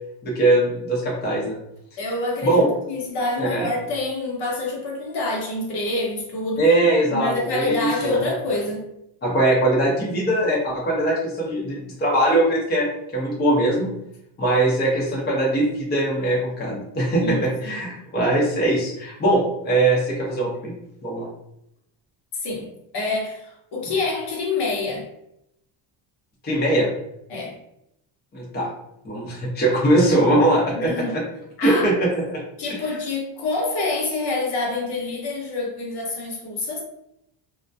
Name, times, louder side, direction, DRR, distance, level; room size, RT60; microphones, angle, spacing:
voice 1, 0.2-1.6 2.4-2.7 3.4-3.7 6.6-8.2 9.2-13.9 14.4-20.7 21.0-21.3 26.4-26.9 28.3-28.7 29.0-31.2 31.6-32.4, right 1 dB, 20° left, -4 dB, 0.6 m, -21 dB
voice 2, 2.0-6.6 7.1-8.8 17.2-17.5 22.3-25.1 27.3-27.6 30.8-31.2 31.6-31.9 32.6-36.8, left 2 dB, 55° left, -1 dB, 0.8 m, -27 dB
2.2 x 2.1 x 2.5 m, 0.79 s
cardioid pair, 115°, 49 cm